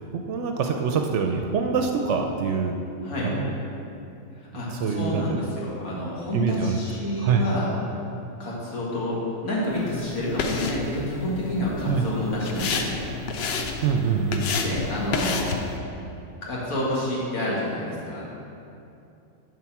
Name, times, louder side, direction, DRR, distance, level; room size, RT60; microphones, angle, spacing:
voice 1, 0.1-2.7 3.2-3.5 4.5-5.4 6.3-6.8 7.2-7.4 11.9-12.0 13.8-14.5, right 6 dB, 65° right, 3 dB, 0.8 m, -25 dB
voice 2, 4.3-7.7 8.4-13.0 14.6-15.5 16.4-18.3, left 1 dB, 80° left, -6 dB, 2.1 m, -29 dB
sound 1, 9.7-15.8, left 4 dB, 60° left, 0.7 m, -31 dB
8.9 x 3.6 x 5.9 m, 2.7 s
omnidirectional pair, 1.5 m